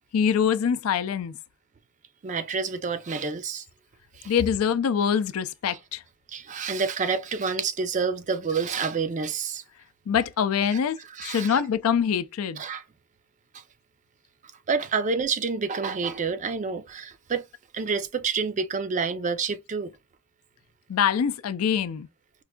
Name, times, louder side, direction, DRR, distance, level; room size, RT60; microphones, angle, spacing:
voice 1, 0.1-1.3 4.3-6.0 10.1-12.6 20.9-22.1, left 7 dB, 75° left, 0.4 m, -24 dB
voice 2, 2.2-3.6 4.2-4.3 6.3-9.6 11.2-11.6 12.6-12.8 14.7-17.4 17.7-19.9, right 5 dB, 35° right, 0.4 m, -28 dB
4.5 x 2.5 x 2.2 m
head